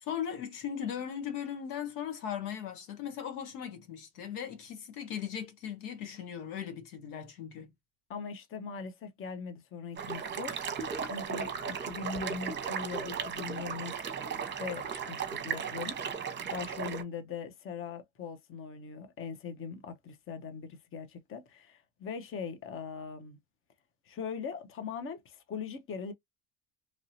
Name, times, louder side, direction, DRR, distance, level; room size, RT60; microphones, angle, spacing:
voice 1, 0.0-7.7, left 8 dB, 90° left, 1.2 m, -38 dB
voice 2, 8.1-10.6 11.0-14.2 14.6-23.4 24.1-26.1, left 6 dB, 30° left, 0.7 m, -41 dB
sound 1, 10.0-17.0, right 6 dB, 25° right, 1.0 m, -36 dB
2.9 x 2.7 x 2.8 m
supercardioid pair, 105°, 44 cm